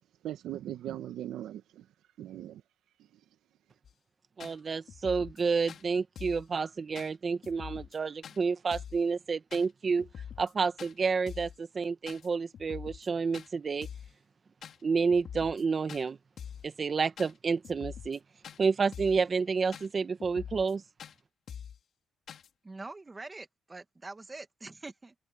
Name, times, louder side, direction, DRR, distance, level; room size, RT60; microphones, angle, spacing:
voice 1, 0.2-1.9 2.2-2.6, right 12 dB, 80° right, 1.5 m, -39 dB
sound 1, 3.8-3.9 4.4-4.5 4.9-5.4 5.7-5.8 6.2-6.5 7.0-7.1 7.4-8.0 8.2-8.4 8.7-9.0 9.5-9.7 10.0-10.5 10.8-10.9 11.3-11.6 12.1-12.3 12.5-13.1 13.3-13.5 13.8-14.1 14.6-14.8 15.1-15.6 15.9-16.0 16.4-16.7 17.2-17.3 17.6-18.2 18.4-18.6 18.9-19.2 19.7-19.9 20.2-20.7 21.0-21.1 21.5-21.8 22.3-22.5, left 8 dB, 60° left, 3.9 m, -44 dB
voice 2, 4.4-10.1 10.4-13.9 14.8-16.2 16.6-18.2 18.6-20.8, right 5 dB, 40° right, 1.5 m, -29 dB
voice 3, 22.6-25.1, right 3 dB, 20° right, 1.7 m, -44 dB
open air
cardioid pair, 90°, 0 cm